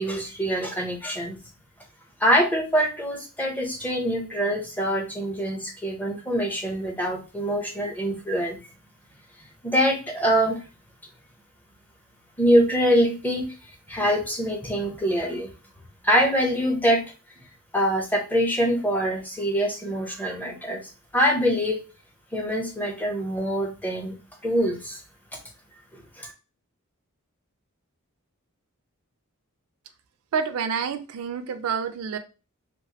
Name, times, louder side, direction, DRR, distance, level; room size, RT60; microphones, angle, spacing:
voice 1, 0.0-1.4 2.2-8.6 9.6-10.6 12.4-15.5 16.0-17.0 17.7-20.8 21.1-21.8 22.3-24.1 24.4-25.0 25.9-26.3, equal, 10° left, 2 dB, 0.5 m, -24 dB
voice 2, 30.3-32.2, right 6 dB, 70° right, 9 dB, 0.4 m, -28 dB
2.9 x 2.4 x 2.8 m, 0.32 s
head